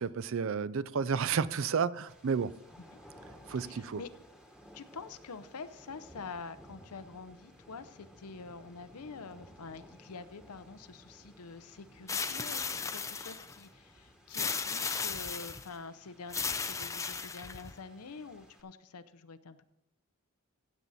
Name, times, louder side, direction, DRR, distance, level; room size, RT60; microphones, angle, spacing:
voice 1, 0.0-2.5 3.5-4.0, right 6 dB, 60° right, 0.4 m, -31 dB
sound 1, 2.1-18.6, equal, 5° right, 1.3 m, -57 dB
voice 2, 3.5-4.1 4.7-19.6, left 4 dB, 85° left, 0.7 m, -47 dB
sound 2, 12.1-13.6 14.3-15.7 16.3-17.7, left 5 dB, 15° left, 0.4 m, -35 dB
16.0 x 7.6 x 4.1 m
head